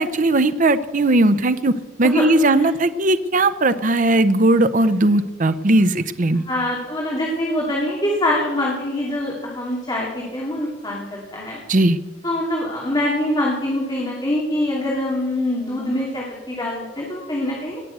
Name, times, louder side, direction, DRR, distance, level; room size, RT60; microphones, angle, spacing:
voice 1, 0.0-6.4 11.7-12.0, right 2 dB, 40° right, 11 dB, 0.7 m, -18 dB
voice 2, 6.5-11.6 12.2-17.8, left 1 dB, 20° left, -3 dB, 2.5 m, -24 dB
18.5 x 6.8 x 8.1 m, 1.2 s
head